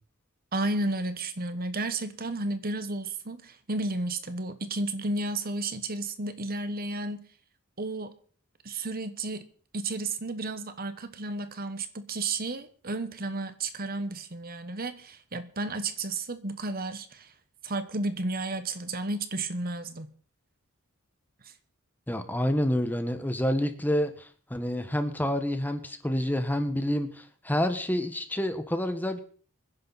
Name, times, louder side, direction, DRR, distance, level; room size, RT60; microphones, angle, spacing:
voice 1, 0.5-7.2 7.8-8.1 8.6-9.4 9.7-17.3 17.6-20.1 21.4-21.5, right 2 dB, 45° right, 1.2 m, -32 dB
voice 2, 22.1-29.2, left 1 dB, 10° left, 1.3 m, -28 dB
25.5 x 10.5 x 4.1 m
head